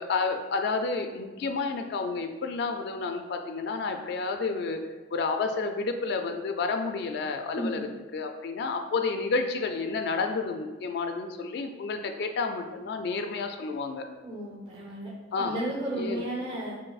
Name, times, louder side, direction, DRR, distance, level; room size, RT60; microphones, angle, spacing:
voice 1, 0.0-4.8 5.1-14.1 15.3-15.6 15.9-16.2, left 4 dB, 65° left, 5 dB, 0.3 m, -30 dB
voice 2, 14.2-15.1 15.4-16.7, right 1 dB, 30° right, -7 dB, 0.7 m, -33 dB
5.8 x 2.6 x 2.3 m, 1.3 s
head